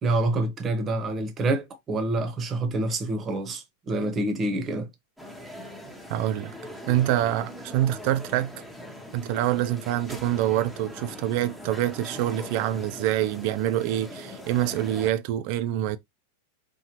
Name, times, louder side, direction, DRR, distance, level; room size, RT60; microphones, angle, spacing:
voice 1, 0.0-4.9, right 2 dB, 30° right, 0.9 m, -27 dB
sound 1, 5.2-15.1, left 1 dB, ahead, 0.9 m, -41 dB
voice 2, 6.1-6.5 6.9-8.5 9.1-16.0, right 13 dB, 55° right, 0.5 m, -26 dB
4.4 x 2.4 x 2.8 m
hypercardioid pair, 105°, 0 cm